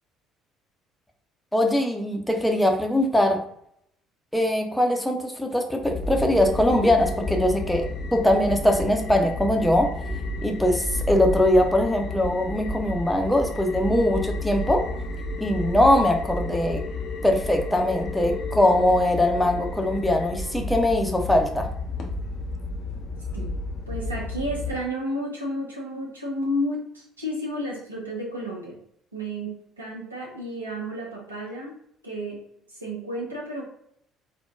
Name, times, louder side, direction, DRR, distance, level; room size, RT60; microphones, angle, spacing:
voice 1, 1.5-3.4 4.3-7.9 8.1-9.9 10.4-14.8 15.4-16.8 17.2-21.7, left 1 dB, 5° left, 3 dB, 0.6 m, -21 dB
sound 1, 5.8-24.8, left 2 dB, 50° left, 0.5 m, -31 dB
voice 2, 23.9-28.8 29.1-31.7 32.0-32.4 32.7-33.6, equal, 85° right, -2 dB, 0.7 m, -31 dB
4.2 x 2.2 x 2.3 m, 0.69 s
figure-of-eight pair, 55°, 0 cm